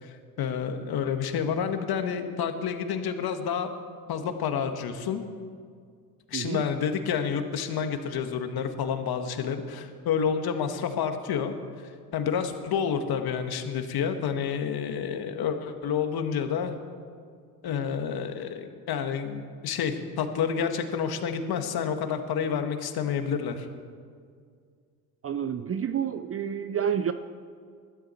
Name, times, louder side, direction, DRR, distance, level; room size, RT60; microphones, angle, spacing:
voice 1, 0.0-3.7 4.1-5.2 6.3-11.5 12.1-16.7 17.6-23.7, left 7 dB, 50° left, 7 dB, 1.7 m, -29 dB
voice 2, 6.3-6.6 25.2-27.1, right 8 dB, 30° right, 11 dB, 0.6 m, -29 dB
20.5 x 13.5 x 4.5 m, 2.1 s
hypercardioid pair, 65°, 46 cm